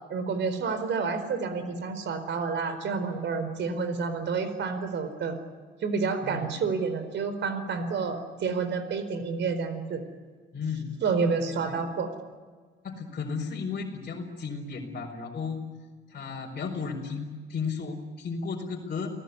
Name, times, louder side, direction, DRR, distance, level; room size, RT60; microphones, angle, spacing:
voice 1, 0.0-5.4 5.8-10.0 11.0-12.1, right 5 dB, 65° right, 11 dB, 4.5 m, -29 dB
voice 2, 10.5-10.9 11.5-11.8 12.8-15.6 16.1-19.1, left 5 dB, 50° left, -2 dB, 4.7 m, -34 dB
29.5 x 18.5 x 9.7 m, 1.5 s
cardioid pair, 90°, 20 cm